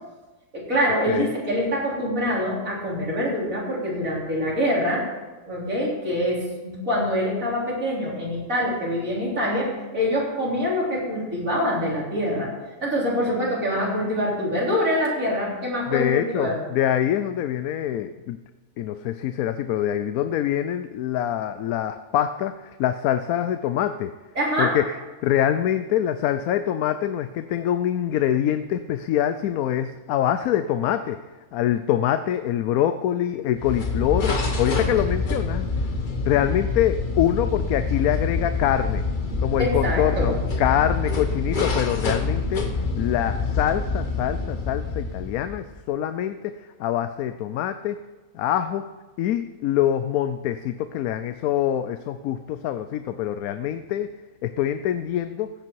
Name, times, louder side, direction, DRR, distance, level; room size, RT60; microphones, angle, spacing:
voice 1, 0.5-5.0 5.5-9.7 9.9-12.5 12.8-16.6 24.4-24.8 39.6-40.3, equal, 70° right, -5 dB, 4.3 m, -25 dB
voice 2, 15.9-18.4 18.8-24.1 24.6-24.9 25.2-31.2 31.5-35.7 36.2-39.0 39.4-48.0 48.3-48.8 49.2-54.1 54.4-55.5, left 11 dB, 85° left, 10 dB, 1.0 m, -25 dB
sound 1, 33.6-45.8, left 4 dB, 35° left, 1.2 m, -26 dB
15.5 x 8.8 x 4.6 m, 1.2 s
omnidirectional pair, 1.5 m